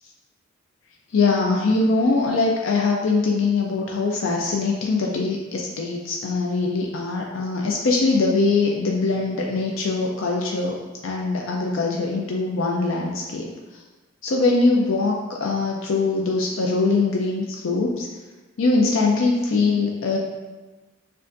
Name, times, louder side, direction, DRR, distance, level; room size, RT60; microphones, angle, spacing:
voice 1, 1.1-10.8 11.0-13.5 14.2-18.1 18.6-20.2, left 3 dB, 75° left, -1 dB, 0.4 m, -22 dB
6.6 x 2.5 x 2.5 m, 1.2 s
head